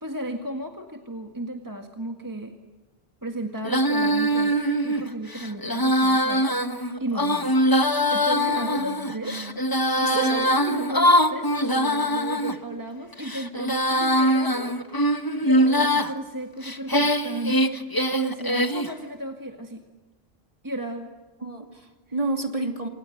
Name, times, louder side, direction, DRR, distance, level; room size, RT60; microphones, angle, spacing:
voice 1, 0.0-2.5 3.2-6.6 7.0-7.6 8.1-9.4 9.8-17.8 18.1-19.8 20.6-21.1, right 1 dB, 20° right, 4 dB, 1.8 m, -34 dB
Female singing, 3.6-12.5 13.1-16.1 16.6-18.9, equal, 20° left, 1.3 m, -22 dB
voice 2, 8.6-9.6 10.0-10.4 21.4-22.9, right 2 dB, 35° right, 4 dB, 2.8 m, -31 dB
28.5 x 26.5 x 7.9 m, 1.3 s
omnidirectional pair, 1.1 m